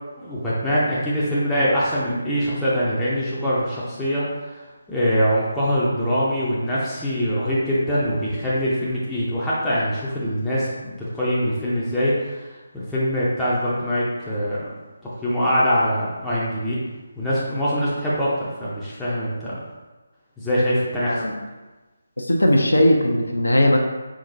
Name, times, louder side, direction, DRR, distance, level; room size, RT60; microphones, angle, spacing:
voice 1, 0.2-4.2 4.9-12.5 12.7-14.6 15.2-16.8 17.2-18.3 18.6-19.5 20.4-21.2, equal, 5° left, -11 dB, 0.6 m, -23 dB
voice 2, 22.2-23.8, left 1 dB, 70° left, 1 dB, 0.6 m, -18 dB
4.8 x 3.5 x 2.6 m, 1.2 s
figure-of-eight pair, 150°, 0 cm